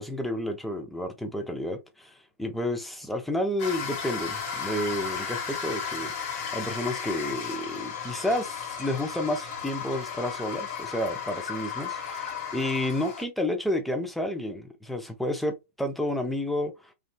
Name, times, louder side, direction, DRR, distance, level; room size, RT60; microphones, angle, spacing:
voice 1, 0.0-16.9, left 1 dB, ahead, 0.6 m, -31 dB
sound 1, 3.6-13.2, left 6 dB, 45° left, 1.3 m, -34 dB
3.2 x 2.5 x 2.2 m
hypercardioid pair, 130°, 8 cm